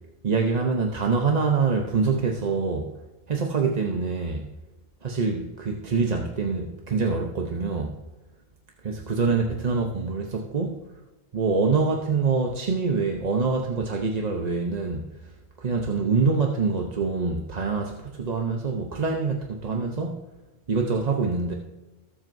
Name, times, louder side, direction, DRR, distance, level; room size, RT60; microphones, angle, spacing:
voice 1, 0.2-2.9 3.3-4.5 5.0-7.9 8.8-10.8 11.3-15.1 15.6-20.2 20.7-21.5, right 4 dB, 40° right, 2 dB, 0.9 m, -25 dB
19.0 x 7.6 x 2.6 m, 1.1 s
omnidirectional pair, 1.1 m